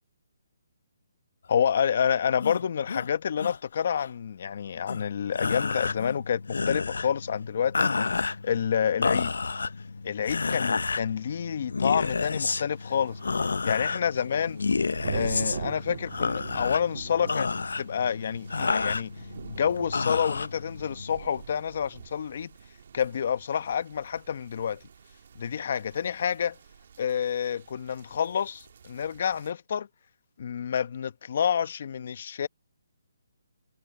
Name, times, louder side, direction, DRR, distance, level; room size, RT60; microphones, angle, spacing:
voice 1, 1.5-8.0 8.4-9.3 10.0-13.2 13.6-14.6 15.1-17.5 17.8-19.1 19.5-22.5 22.9-24.8 25.4-26.6 27.0-29.9 30.4-32.5, left 8 dB, 45° left, 1.1 m, -28 dB
sound 1, 2.4-3.1 3.4-3.6 4.0-4.1 4.9-5.1 6.0-6.2, left 5 dB, 60° left, 2.5 m, -37 dB
sound 2, 5.3-21.2, left 4 dB, 85° left, 0.7 m, -30 dB
sound 3, 12.4-29.5, right 7 dB, 50° right, 2.2 m, -44 dB
hypercardioid pair, 170°, 0 cm